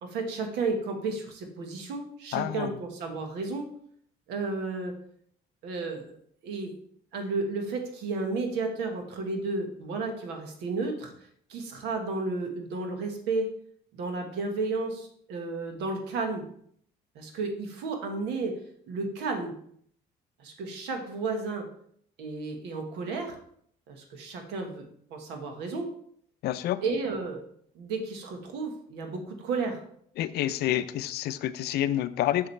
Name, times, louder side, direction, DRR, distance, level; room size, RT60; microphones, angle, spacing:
voice 1, 0.0-3.7 4.3-5.0 5.6-6.1 6.4-6.7 7.1-11.1 11.5-13.5 13.9-16.4 17.1-18.6 18.9-19.5 20.4-21.7 22.2-23.4 23.9-25.9 26.8-27.4 27.7-29.8, right 3 dB, 90° right, 4 dB, 1.6 m, -32 dB
voice 2, 2.3-2.7 26.4-26.8 30.2-32.5, left 12 dB, 75° left, 13 dB, 0.5 m, -28 dB
7.0 x 6.5 x 3.3 m, 0.64 s
cardioid pair, 110°, 17 cm